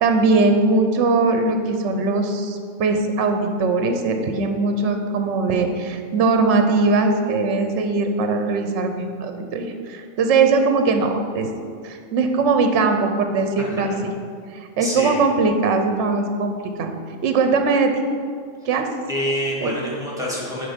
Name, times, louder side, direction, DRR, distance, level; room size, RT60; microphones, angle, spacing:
voice 1, 0.0-11.5 11.8-13.9 14.5-16.9 17.2-18.0 18.6-18.9 19.6-19.7, right 3 dB, 65° right, 6 dB, 1.0 m, -20 dB
voice 2, 14.8-15.1 19.1-20.7, equal, 5° right, -5 dB, 2.2 m, -26 dB
10.0 x 4.9 x 5.1 m, 2.1 s
omnidirectional pair, 1.3 m